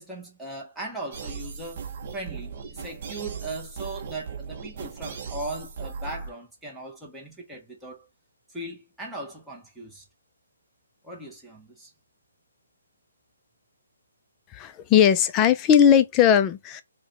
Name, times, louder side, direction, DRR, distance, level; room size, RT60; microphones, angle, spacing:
voice 1, 0.0-8.1 8.5-10.0 11.0-11.9, right 2 dB, ahead, 0.7 m, -38 dB
sound 1, 1.1-6.3, right 5 dB, 35° right, 0.7 m, -37 dB
voice 2, 14.5-16.8, left 9 dB, 20° left, 0.4 m, -18 dB
4.6 x 2.1 x 2.8 m
hypercardioid pair, 160°, 0 cm